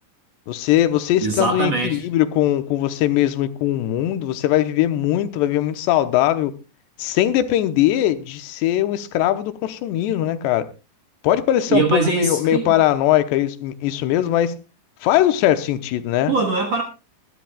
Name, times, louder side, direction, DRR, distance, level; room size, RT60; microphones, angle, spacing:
voice 1, 0.5-6.5 7.0-10.7 11.2-14.6 15.0-16.3, left 12 dB, 85° left, 3.0 m, -20 dB
voice 2, 1.2-2.0 11.7-12.7 16.3-16.8, right 4 dB, 60° right, 1.7 m, -21 dB
21.5 x 13.5 x 2.3 m
omnidirectional pair, 4.9 m